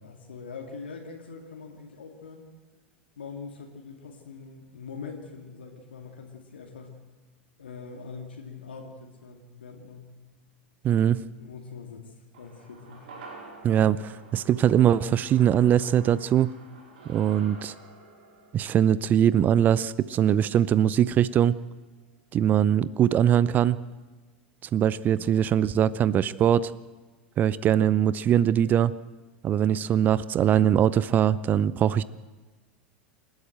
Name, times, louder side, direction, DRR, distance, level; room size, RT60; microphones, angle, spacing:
voice 1, 0.0-2.5 3.2-7.0 7.6-10.1 11.4-13.1, left 5 dB, 70° left, 1 dB, 2.4 m, -43 dB
voice 2, 10.8-11.2 13.6-16.5 17.1-17.7 18.5-21.5 22.3-23.8 24.7-26.7 27.4-28.9 29.4-32.0, right 10 dB, 30° right, 19 dB, 0.5 m, -22 dB
sound 1, 12.3-20.8 21.1-21.2, right 3 dB, 60° right, 4.8 m, -49 dB
28.0 x 12.0 x 7.8 m, 1.3 s
figure-of-eight pair, 85°, 6 cm